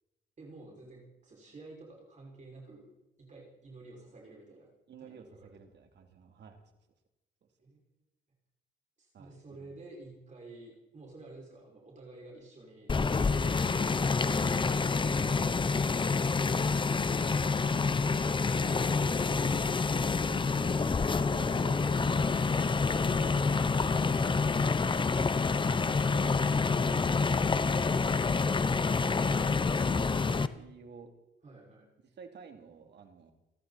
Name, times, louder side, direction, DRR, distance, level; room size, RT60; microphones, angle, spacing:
voice 1, 0.4-2.9 3.2-4.7 5.0-5.5 7.6-7.8 9.0-14.7 15.0-15.4 20.7-20.8 21.2-21.9 31.4-31.9, right 2 dB, 40° right, -2 dB, 6.0 m, -51 dB
voice 2, 4.9-6.6 9.1-9.7 15.0-15.6 18.6-18.8 20.3-20.9 21.3-22.3 28.5-31.1 32.0-33.3, right 6 dB, 60° right, 4 dB, 3.0 m, -52 dB
sound 1, 12.9-30.5, left 4 dB, 25° left, 0.8 m, -28 dB
29.0 x 12.0 x 4.3 m, 0.95 s
cardioid pair, 90°, 20 cm